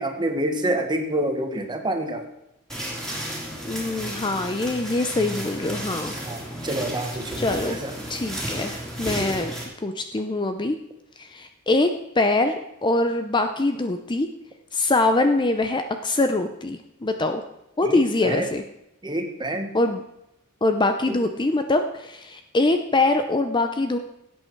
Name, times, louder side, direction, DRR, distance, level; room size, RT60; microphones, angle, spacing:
voice 1, 0.0-2.3 6.3-7.9 17.8-18.5 19.0-19.7 21.1-21.2, right 1 dB, 20° right, 5 dB, 1.4 m, -27 dB
sound 1, 2.7-9.6, equal, ahead, 3.3 m, -33 dB
voice 2, 3.6-6.2 7.4-7.8 8.1-9.5 9.8-10.8 11.2-11.9 12.2-12.5 12.8-14.3 14.7-17.4 17.8-18.6 19.7-20.0 20.6-24.0, left 2 dB, 20° left, 7 dB, 0.6 m, -23 dB
16.5 x 8.3 x 4.6 m, 0.87 s
head